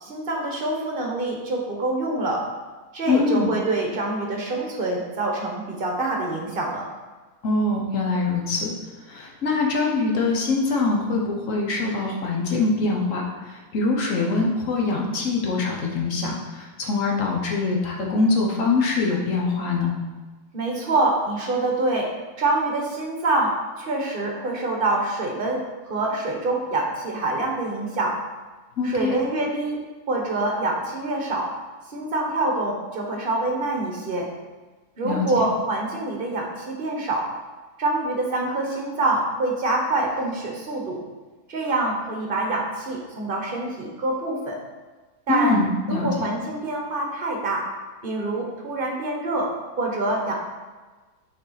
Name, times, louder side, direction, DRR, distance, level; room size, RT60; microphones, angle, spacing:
voice 1, 0.0-2.4 2.9-6.8 20.5-22.1 22.4-28.2 28.8-29.8 30.1-31.5 31.9-34.3 35.0-37.3 37.8-41.0 41.5-44.6 45.3-45.6 45.9-47.7 48.0-49.5 49.8-50.3, right 2 dB, 40° right, 0 dB, 1.1 m, -25 dB
voice 2, 3.1-3.5 7.4-8.7 9.1-19.9 28.8-29.2 35.0-35.4 45.3-46.3, left 3 dB, 55° left, -1 dB, 1.2 m, -23 dB
6.6 x 4.1 x 4.0 m, 1.3 s
omnidirectional pair, 1.7 m